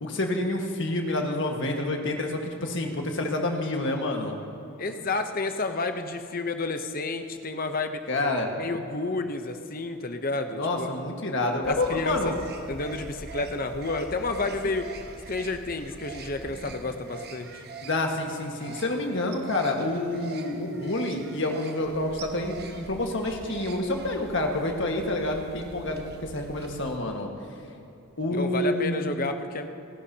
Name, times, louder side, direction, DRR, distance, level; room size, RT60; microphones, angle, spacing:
voice 1, 0.0-4.4 8.1-8.5 10.6-12.3 17.8-27.3 28.2-29.1, left 2 dB, 55° left, 2 dB, 1.6 m, -28 dB
voice 2, 4.8-8.0 8.6-10.9 11.7-12.4 12.7-14.8 15.3-17.5 28.3-29.7, left 3 dB, 40° left, 7 dB, 0.8 m, -30 dB
sound 1, 11.6-27.0, right 3 dB, 45° right, 1.1 m, -43 dB
29.5 x 11.5 x 2.9 m, 2.8 s
head